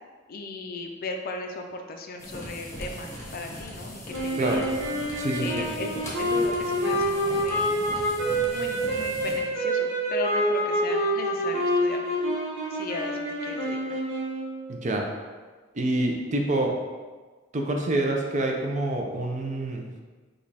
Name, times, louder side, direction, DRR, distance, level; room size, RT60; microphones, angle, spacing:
voice 1, 0.3-4.7 5.4-7.8 8.5-12.0 12.7-13.8, left 3 dB, 45° left, 3 dB, 0.4 m, -37 dB
sound 1, 2.2-9.4, left 1 dB, 15° left, 0.8 m, -40 dB
sound 2, 4.1-14.6, right 1 dB, 70° right, 1.2 m, -27 dB
voice 2, 5.2-5.7 14.7-15.1 15.7-16.8 17.5-19.9, right 1 dB, 35° right, 1 dB, 0.5 m, -27 dB
5.1 x 2.3 x 4.1 m, 1.4 s
head